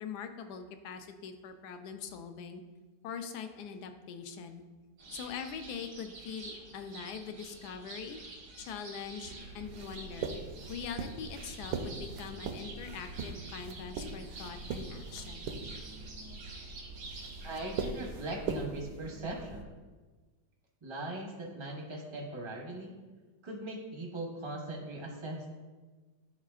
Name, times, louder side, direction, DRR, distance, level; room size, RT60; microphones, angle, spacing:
voice 1, 0.0-2.6 3.0-4.6 5.1-8.2 8.6-10.3 10.7-15.5, left 6 dB, 75° left, 7 dB, 1.1 m, -42 dB
sound 1, 5.0-18.1, right 3 dB, 85° right, 1.9 m, -49 dB
sound 2, 9.2-19.6, right 4 dB, 70° right, 1.0 m, -41 dB
voice 2, 17.4-19.7 20.8-23.0 23.4-25.5, right 2 dB, 30° right, 0 dB, 0.5 m, -40 dB
11.0 x 4.0 x 2.4 m, 1.3 s
omnidirectional pair, 1.9 m